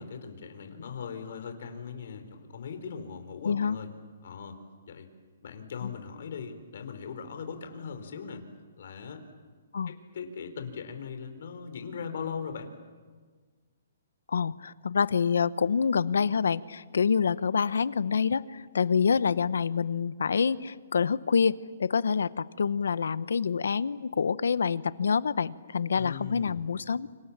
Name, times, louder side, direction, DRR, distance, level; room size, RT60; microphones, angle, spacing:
voice 1, 0.0-3.9 4.2-4.6 4.8-5.1 5.4-8.4 8.8-9.2 9.9-12.7 25.9-26.6, left 6 dB, 60° left, 7 dB, 4.2 m, -39 dB
voice 2, 3.4-3.8 5.8-5.9 9.7-9.9 14.3-27.1, left 6 dB, 85° left, 17 dB, 0.9 m, -27 dB
29.0 x 26.0 x 7.4 m, 1.5 s
hypercardioid pair, 160°, 0 cm